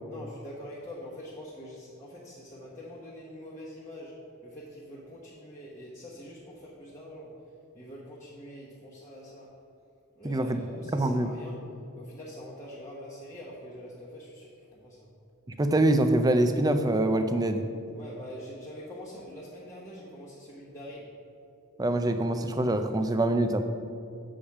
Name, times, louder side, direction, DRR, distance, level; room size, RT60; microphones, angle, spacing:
voice 1, 0.1-7.4 7.7-9.5 10.2-11.6 12.0-15.1 17.9-21.1, equal, 15° left, -9 dB, 1.1 m, -44 dB
voice 2, 10.2-10.6 10.9-11.3 15.6-17.6 21.8-23.6, right 1 dB, 15° right, 8 dB, 0.4 m, -24 dB
7.0 x 5.0 x 7.1 m, 2.5 s
head